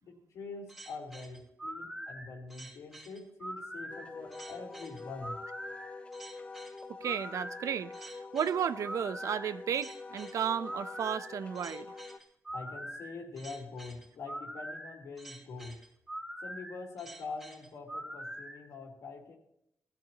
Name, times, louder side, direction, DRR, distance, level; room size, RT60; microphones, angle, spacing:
voice 1, 0.0-5.4 12.5-15.8 16.4-19.4, left 3 dB, 90° left, 3.6 m, -44 dB
sound 1, 0.7-18.6, right 1 dB, 5° right, 2.7 m, -44 dB
Wind instrument woodwind instrument, 3.9-12.2, left 4 dB, 20° left, 0.6 m, -46 dB
voice 2, 7.0-11.9, right 8 dB, 75° right, 0.6 m, -33 dB
19.0 x 13.5 x 2.9 m
wide cardioid pair, 160°, 5 cm